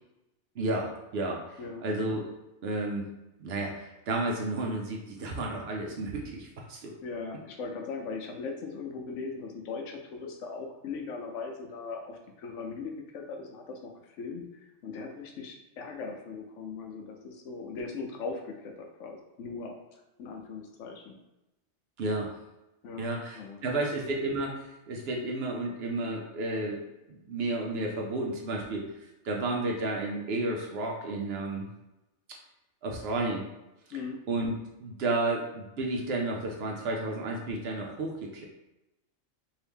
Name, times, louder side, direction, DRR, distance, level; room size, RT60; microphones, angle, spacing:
voice 1, 0.6-2.2 2.6-3.1 3.4-6.9 22.0-22.3 23.0-24.6 24.9-26.8 27.1-28.9 29.2-31.7 32.8-33.4 34.3-34.5 34.8-38.4, right 2 dB, 65° right, 0 dB, 0.7 m, -32 dB
voice 2, 7.0-14.4 14.8-19.7 20.2-21.1 22.8-23.9 33.9-34.2, left 4 dB, 75° left, 3 dB, 0.9 m, -39 dB
2.9 x 2.7 x 3.4 m, 0.95 s
omnidirectional pair, 1.3 m